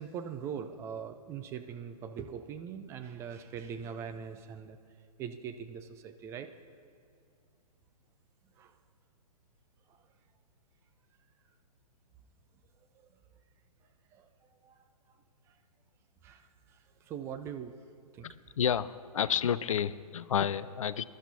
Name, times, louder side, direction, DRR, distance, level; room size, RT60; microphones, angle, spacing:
voice 1, 0.0-4.8 5.2-6.5 8.6-8.8 9.9-10.0 14.1-14.3 14.6-15.2 16.2-17.7 18.1-18.3, right 7 dB, 15° right, 7 dB, 0.4 m, -42 dB
voice 2, 18.2-21.0, left 8 dB, 60° left, 17 dB, 0.4 m, -30 dB
22.0 x 12.0 x 2.8 m, 2.3 s
figure-of-eight pair, 120°, 20 cm